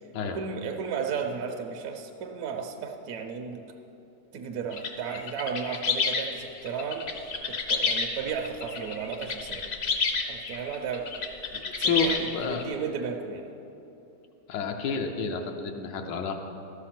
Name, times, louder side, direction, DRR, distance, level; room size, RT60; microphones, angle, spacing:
voice 1, 0.3-3.6 4.3-7.1 7.5-9.7 10.3-11.1 11.5-13.5, right 6 dB, 70° right, 3 dB, 1.0 m, -34 dB
sound 1, 4.7-12.6, left 4 dB, 55° left, 0.7 m, -30 dB
voice 2, 11.7-12.6 14.5-16.4, left 5 dB, 80° left, 3 dB, 1.3 m, -30 dB
13.0 x 6.1 x 5.8 m, 2.9 s
omnidirectional pair, 1.9 m